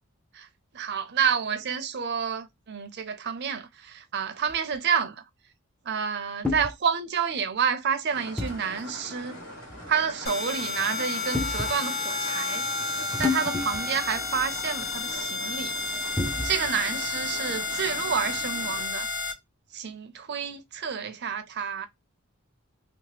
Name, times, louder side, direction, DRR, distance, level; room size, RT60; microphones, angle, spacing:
voice 1, 0.7-5.2 5.8-9.4 9.8-12.7 13.2-15.7 16.4-19.1 19.7-21.9, right 7 dB, 50° right, 0.5 m, -29 dB
sound 1, 4.5-4.8 6.4-6.7 8.4-8.6 9.7-9.9 11.3-11.8 13.1-14.0 14.3-14.4 16.2-16.7, left 3 dB, 5° left, 0.5 m, -30 dB
sound 2, 8.1-18.8, equal, 85° left, 1.5 m, -43 dB
sound 3, 10.3-19.3, left 3 dB, 50° left, 0.9 m, -31 dB
2.9 x 2.0 x 3.2 m
head